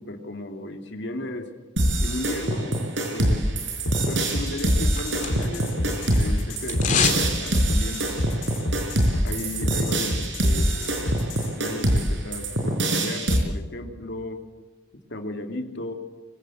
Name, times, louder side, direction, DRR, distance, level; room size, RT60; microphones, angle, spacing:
voice 1, 0.0-1.5 2.0-3.6 4.1-8.1 9.2-11.2 11.6-14.4 15.1-15.9, left 1 dB, 65° left, 5 dB, 2.8 m, -35 dB
sound 1, 1.8-13.4, right 1 dB, 70° right, 5.2 m, -24 dB
sound 2, 3.8-11.5, left 1 dB, 85° left, 3.6 m, -30 dB
sound 3, 4.5-5.7 6.0-7.3 7.6-7.7, left 6 dB, 40° left, 3.3 m, -26 dB
24.5 x 16.5 x 7.9 m, 1.3 s
head